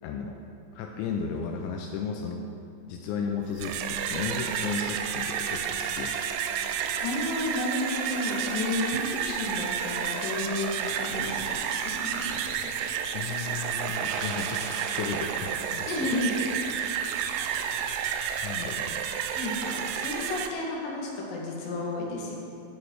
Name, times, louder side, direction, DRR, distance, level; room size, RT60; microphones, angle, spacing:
voice 1, 0.0-0.4 0.7-2.5 2.9-6.2 8.9-9.0 13.1-16.2 18.4-19.0, left 5 dB, 80° left, 2 dB, 2.9 m, -34 dB
sound 1, 3.4-20.5, right 8 dB, 85° right, 2.6 m, -31 dB
voice 2, 7.0-12.4 15.9-16.5 17.5-17.7 19.3-22.4, left 2 dB, 55° left, -3 dB, 3.1 m, -32 dB
11.5 x 11.0 x 4.7 m, 2.6 s
omnidirectional pair, 5.7 m